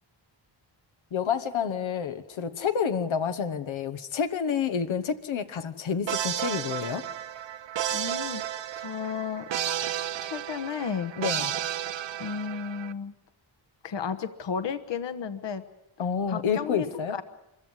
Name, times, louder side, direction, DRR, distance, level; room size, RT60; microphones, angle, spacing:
voice 1, 1.1-7.0 11.2-11.5 16.0-17.2, left 7 dB, 90° left, 8 dB, 1.4 m, -29 dB
sound 1, 6.1-12.9, right 11 dB, 65° right, 0.9 m, -32 dB
voice 2, 7.9-8.4 8.8-9.5 10.2-11.1 12.2-13.1 13.8-15.6 16.3-17.2, left 6 dB, 65° left, 8 dB, 1.2 m, -33 dB
24.5 x 15.0 x 9.6 m, 0.88 s
wide cardioid pair, 110°, 46 cm